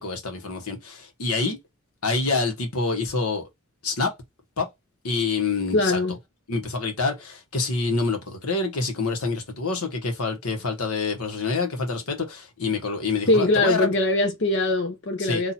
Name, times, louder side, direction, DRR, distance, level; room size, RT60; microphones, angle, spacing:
voice 1, 0.0-1.6 2.0-3.4 3.8-4.1 4.6-4.7 5.0-6.0 6.5-13.9 15.2-15.4, left 4 dB, 85° left, 1.3 m, -26 dB
voice 2, 5.7-6.2 13.3-15.5, left 2 dB, 55° left, 0.7 m, -22 dB
4.2 x 2.7 x 4.3 m
head